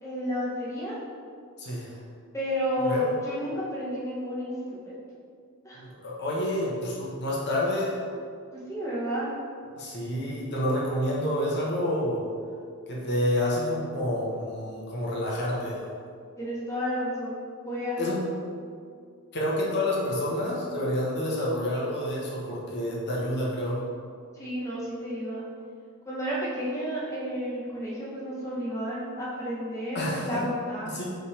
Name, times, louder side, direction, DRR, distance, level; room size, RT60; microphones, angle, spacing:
voice 1, 0.0-1.0 2.3-5.0 5.6-5.8 8.7-9.3 16.4-17.4 17.6-17.9 24.3-25.4 26.1-31.0, equal, 15° left, -7 dB, 1.0 m, -31 dB
voice 2, 1.6-2.0 2.8-3.1 5.7-8.0 9.7-12.3 12.9-15.8 18.0-18.2 19.3-23.9 29.9-30.4 30.9-31.0, left 1 dB, 50° left, -4 dB, 1.2 m, -29 dB
5.7 x 3.9 x 4.9 m, 2.2 s
head